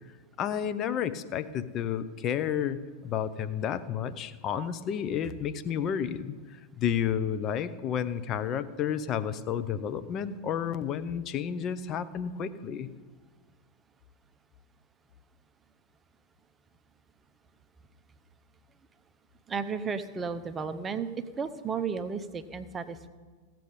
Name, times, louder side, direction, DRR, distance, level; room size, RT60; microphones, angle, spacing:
voice 1, 0.4-12.9, left 8 dB, 30° left, 12 dB, 0.7 m, -31 dB
voice 2, 19.5-23.1, right 5 dB, 20° right, 11 dB, 0.7 m, -33 dB
16.0 x 7.6 x 5.4 m, 1.4 s
figure-of-eight pair, 90°, 0 cm